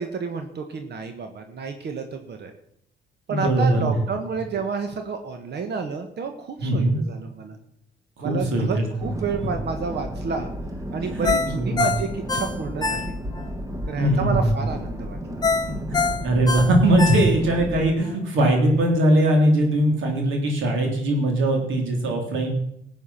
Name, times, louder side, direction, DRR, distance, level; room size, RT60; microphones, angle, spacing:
voice 1, 0.0-2.5 3.3-7.6 8.2-10.5 10.9-13.1 13.9-15.4, right 5 dB, 60° right, 6 dB, 1.4 m, -30 dB
voice 2, 3.3-3.9 6.6-7.0 8.2-8.9 11.1-11.9 14.0-14.5 15.7-22.5, right 1 dB, 80° right, 2 dB, 3.4 m, -21 dB
sound 1, 9.0-17.9, equal, 15° right, 1.4 m, -33 dB
Ringtone, 11.2-13.5 13.9-14.0 15.4-17.7 18.1-18.2, left 4 dB, 20° left, 1.5 m, -25 dB
14.0 x 8.0 x 5.8 m, 0.74 s
cardioid pair, 90°, 20 cm